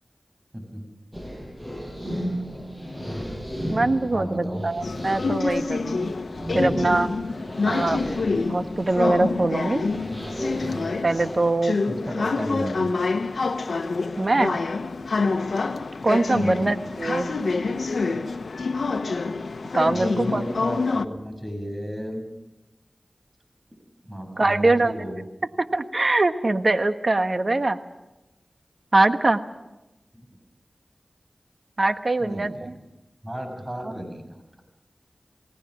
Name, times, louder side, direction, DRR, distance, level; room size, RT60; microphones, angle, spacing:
voice 1, 0.5-0.9 4.1-4.7 11.9-12.9 16.3-16.7 19.9-22.2 24.0-25.2 30.1-30.3 32.2-32.7 33.2-34.4, equal, 30° right, 5 dB, 6.5 m, -33 dB
sound 1, 1.1-11.4, equal, 5° right, 7.0 m, -34 dB
voice 2, 3.7-6.2 6.5-7.1 7.7-8.1 8.5-9.8 11.0-11.8 14.2-14.6 16.0-17.3 19.7-20.4 24.4-24.9 25.6-27.8 28.9-29.4 31.8-32.7 33.8-33.9, right 2 dB, 55° right, 8 dB, 1.3 m, -22 dB
sound 2, 4.8-21.1, left 4 dB, 90° left, 1.0 m, -27 dB
29.5 x 18.0 x 6.2 m, 0.99 s
wide cardioid pair, 50°, 0 cm